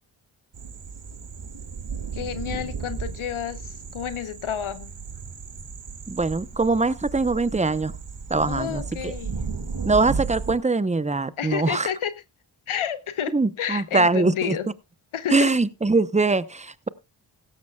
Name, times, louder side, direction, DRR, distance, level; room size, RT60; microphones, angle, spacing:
sound 1, 0.5-10.5, right 5 dB, 65° right, 2.1 m, -34 dB
voice 1, 2.1-4.9 8.4-9.3 11.4-12.1 12.7-14.7 15.1-15.5, left 9 dB, 80° left, 1.0 m, -30 dB
voice 2, 6.1-7.9 8.3-9.1 9.8-11.9 13.3-14.6 15.3-16.9, right 3 dB, 15° right, 0.8 m, -22 dB
16.5 x 13.0 x 2.3 m
cardioid pair, 40°, 49 cm